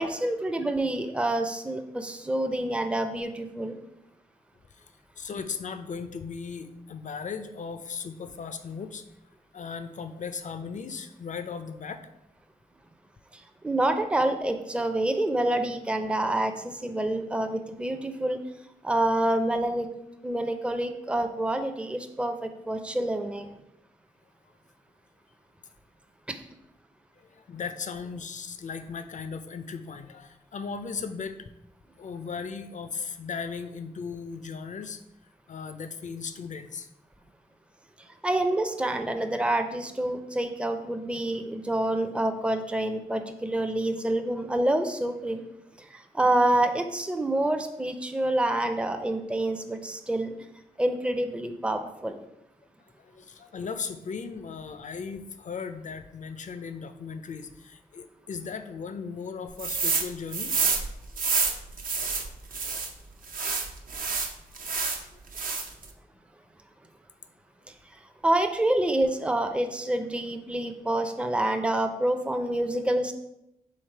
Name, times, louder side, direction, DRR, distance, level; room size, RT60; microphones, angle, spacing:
voice 1, 0.0-3.7 13.6-18.4 18.8-19.9 20.2-23.5 26.3-26.4 38.2-45.4 45.9-50.3 50.8-52.2 68.2-73.1, right 1 dB, 5° right, 6 dB, 0.4 m, -27 dB
voice 2, 4.8-9.0 9.5-12.0 20.5-20.6 27.2-31.5 32.0-35.0 35.5-36.9 53.0-60.5 65.1-65.2, left 5 dB, 55° left, 10 dB, 0.4 m, -37 dB
sound 1, 59.6-60.1 60.3-62.9 63.3-65.0 65.3-65.9, right 4 dB, 65° right, 0.6 m, -28 dB
3.4 x 3.2 x 4.4 m, 0.86 s
cardioid pair, 45°, 15 cm